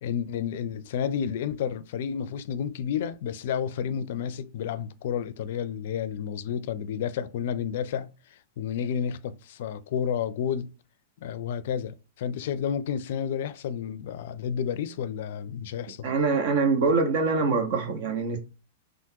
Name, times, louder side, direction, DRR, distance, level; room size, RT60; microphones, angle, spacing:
voice 1, 0.0-10.7 11.2-16.1, left 8 dB, 65° left, 0.4 m, -31 dB
voice 2, 16.0-18.4, right 4 dB, 55° right, 1.0 m, -24 dB
3.6 x 2.4 x 2.7 m
hypercardioid pair, 115°, 0 cm